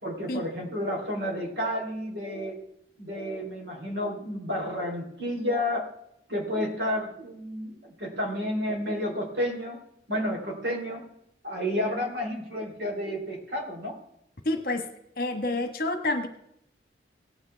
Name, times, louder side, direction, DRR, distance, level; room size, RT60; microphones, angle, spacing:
voice 1, 0.0-2.5 3.0-5.8 6.3-9.8 10.1-11.0 11.4-14.0, equal, 65° right, 1 dB, 3.6 m, -31 dB
voice 2, 14.4-14.9 15.2-16.3, left 2 dB, 50° left, 6 dB, 1.4 m, -28 dB
18.0 x 8.8 x 3.4 m, 0.75 s
head